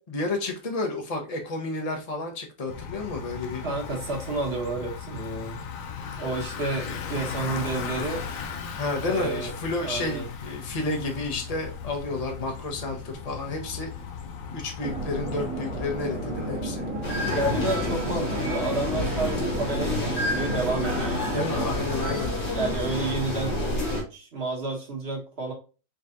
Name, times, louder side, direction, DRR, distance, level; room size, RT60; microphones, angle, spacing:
voice 1, 0.1-3.6 8.8-13.9 14.5-16.9 21.3-22.3, left 2 dB, 25° left, 2 dB, 1.0 m, -31 dB
Bicycle, 2.7-20.9, left 6 dB, 60° left, 1.0 m, -38 dB
voice 2, 3.6-5.6 6.2-8.2 9.0-9.5 9.8-10.2 17.3-21.8 22.5-25.5, right 2 dB, 35° right, -1 dB, 1.6 m, -30 dB
sound 1, 14.8-21.7, right 2 dB, 55° right, 2.0 m, -33 dB
sound 2, 17.0-24.0, left 1 dB, 85° left, 2.4 m, -29 dB
5.2 x 3.2 x 2.5 m, 0.34 s
omnidirectional pair, 1.9 m